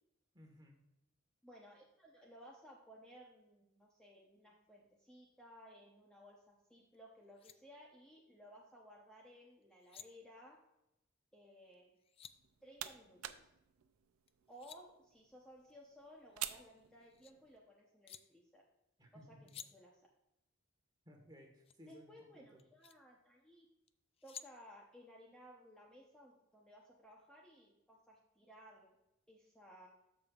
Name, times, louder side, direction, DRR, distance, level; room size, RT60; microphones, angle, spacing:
voice 1, 0.3-0.8 19.0-19.4 21.0-22.6, equal, 20° right, 2 dB, 1.5 m, -59 dB
voice 2, 1.4-10.6 11.3-12.0 12.6-13.5 14.5-18.6 19.1-20.0 21.9-23.7 24.2-28.9 29.3-29.9, equal, 5° left, -3 dB, 0.8 m, -59 dB
sound 1, 6.9-7.0 7.2-7.6 9.6-10.1 11.7-12.4 14.3-14.8 16.2-17.3 18.0-18.2 19.5-19.7 21.6-21.8 22.6-23.0 23.9-24.5, left 8 dB, 30° left, 0.3 m, -54 dB
sound 2, 12.3-17.6, right 12 dB, 90° right, 0.5 m, -50 dB
13.5 x 5.3 x 2.4 m, 0.89 s
head